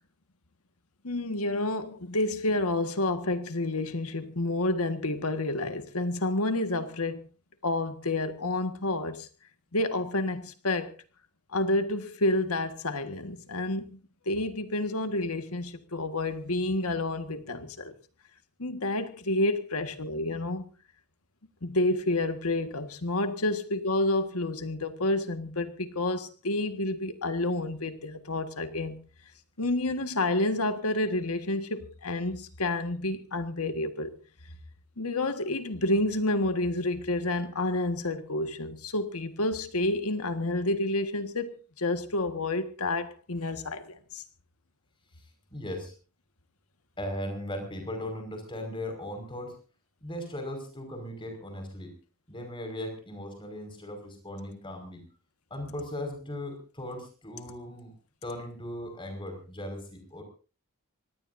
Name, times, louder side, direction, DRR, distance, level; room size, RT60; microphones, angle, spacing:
voice 1, 1.0-7.2 7.6-9.3 9.7-10.9 11.5-17.9 18.6-20.6 21.6-29.0 29.6-34.1 35.0-41.5 41.8-44.2, left 2 dB, 75° left, 1.7 m, -29 dB
voice 2, 45.5-45.9 47.0-49.6 50.0-52.0 52.3-55.1 55.5-57.9 58.2-60.2, left 1 dB, 20° left, 5.5 m, -38 dB
25.0 x 19.0 x 2.7 m
head